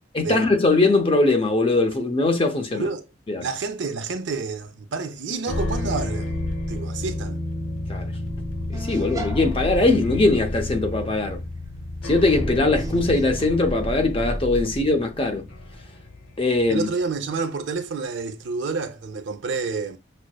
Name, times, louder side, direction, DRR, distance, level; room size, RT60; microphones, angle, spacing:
voice 1, 0.1-2.9 3.3-3.5 7.9-8.1 8.7-11.4 12.0-15.5 16.4-16.9, left 2 dB, 30° left, 0.6 m, -21 dB
voice 2, 2.7-3.0 3.4-6.4 6.7-7.4 16.7-20.0, right 4 dB, 65° right, 0.5 m, -29 dB
sound 1, 5.5-16.8, left 1 dB, 90° left, 1.0 m, -31 dB
sound 2, 8.7-14.9, equal, 15° right, 0.5 m, -34 dB
6.1 x 2.1 x 2.2 m
head